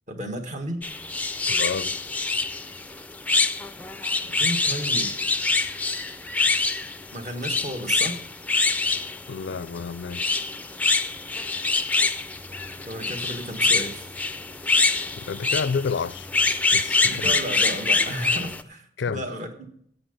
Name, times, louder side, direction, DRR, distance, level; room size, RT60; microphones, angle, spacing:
voice 1, 0.1-0.8 4.4-5.1 7.1-8.2 12.9-14.1 17.0-19.7, right 1 dB, 40° right, 1.7 m, -33 dB
sound 1, 0.8-18.6, left 3 dB, 10° left, 0.4 m, -25 dB
voice 2, 1.5-2.1 9.3-10.5 15.1-16.3 16.7-17.4 19.0-19.3, left 5 dB, 70° left, 0.4 m, -30 dB
15.0 x 8.0 x 5.3 m
head